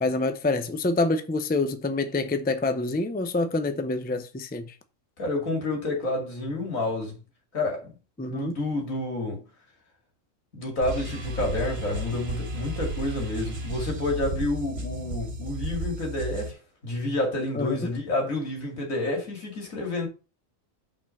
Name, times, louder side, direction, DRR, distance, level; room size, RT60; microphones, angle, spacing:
voice 1, 0.0-4.7 8.2-8.5 17.5-17.8, left 2 dB, 10° left, 0.5 m, -26 dB
voice 2, 5.2-7.2 7.5-7.9 8.3-9.4 10.5-20.1, left 2 dB, 80° left, 2.8 m, -29 dB
sound 1, 10.8-16.5, right 2 dB, 50° right, 1.5 m, -33 dB
6.0 x 4.4 x 6.4 m
omnidirectional pair, 1.4 m